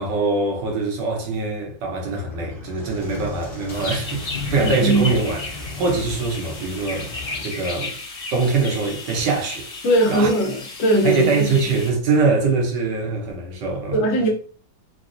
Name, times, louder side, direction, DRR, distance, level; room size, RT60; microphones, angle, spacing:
voice 1, 0.0-7.1 7.4-8.0 8.3-9.7 10.1-10.3 11.0-14.0, right 3 dB, 70° right, 1.5 m, -23 dB
sound 1, 2.2-7.4, left 3 dB, 25° left, 0.8 m, -34 dB
sound 2, 3.7-11.9, left 3 dB, 60° left, 0.3 m, -34 dB
voice 2, 9.8-11.6 13.9-14.3, right 1 dB, 75° left, 1.5 m, -19 dB
3.9 x 2.2 x 2.5 m
omnidirectional pair, 2.1 m